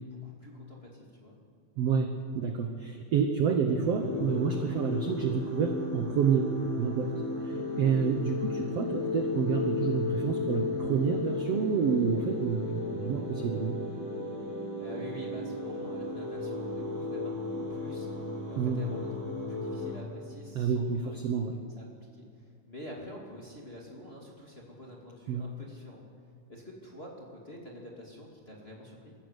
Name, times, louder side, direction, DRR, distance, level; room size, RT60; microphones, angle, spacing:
voice 1, 0.0-1.3 14.8-21.2 21.8-26.0 26.5-29.1, equal, 20° left, -2 dB, 2.0 m, -47 dB
voice 2, 1.8-6.5 6.8-7.1 7.4-13.8 18.6-18.8 20.5-21.6 25.3-25.4, right 6 dB, 65° right, 5 dB, 1.6 m, -29 dB
sound 1, 3.8-20.0, left 3 dB, 55° left, 8.0 m, -35 dB
22.5 x 14.0 x 8.1 m, 2.3 s
omnidirectional pair, 4.2 m